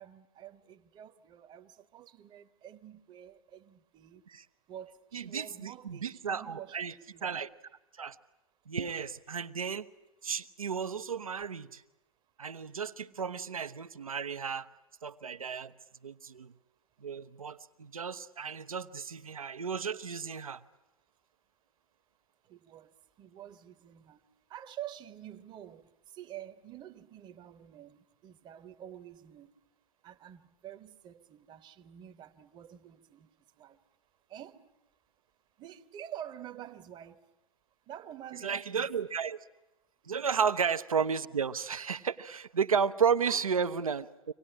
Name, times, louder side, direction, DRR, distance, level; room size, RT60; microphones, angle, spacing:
voice 1, 0.0-4.2 4.7-7.4 22.5-24.2 24.5-25.8 26.1-29.5 30.0-33.3 33.6-33.8 34.3-34.7 35.6-37.2 37.9-38.9 40.3-40.4 43.3-43.6, right 11 dB, 25° right, 1.0 m, -48 dB
voice 2, 5.1-6.9 7.2-7.5 8.0-8.2 8.7-9.9 10.2-11.8 12.4-14.7 15.0-15.7 16.0-16.5 17.0-20.6 38.4-39.4 40.1-44.3, right 6 dB, 80° right, 0.9 m, -33 dB
25.0 x 18.5 x 10.0 m
figure-of-eight pair, 105°, 18 cm